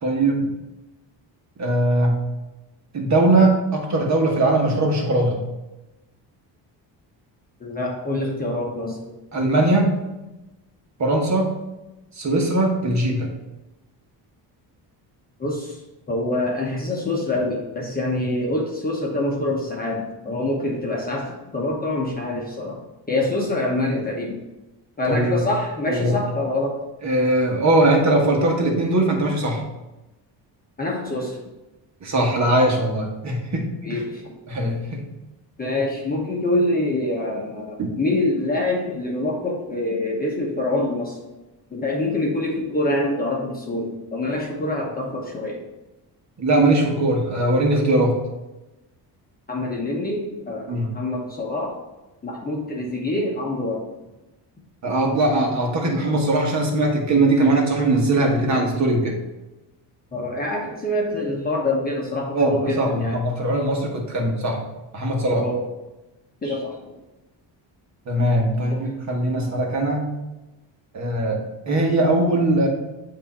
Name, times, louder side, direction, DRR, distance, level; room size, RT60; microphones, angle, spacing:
voice 1, 0.0-0.5 1.6-2.2 2.9-5.4 9.3-10.0 11.0-11.5 12.1-13.3 25.0-25.4 25.9-26.2 27.0-29.6 32.0-34.0 34.5-35.0 37.8-37.9 46.4-48.1 50.7-50.9 54.8-59.2 62.3-64.6 64.9-65.4 66.4-66.6 68.1-70.0 70.9-72.7, right 1 dB, 40° right, 0 dB, 1.3 m, -20 dB
voice 2, 7.6-9.0 15.4-15.8 16.1-22.8 23.1-24.4 25.0-26.8 30.8-31.4 33.8-34.3 35.6-41.2 41.7-45.6 49.5-51.8 52.2-53.9 60.1-63.2 65.4-65.6 66.4-66.9 68.7-68.8, left 1 dB, 20° left, -2 dB, 1.0 m, -25 dB
8.1 x 2.9 x 4.2 m, 1.0 s
cardioid pair, 140°, 43 cm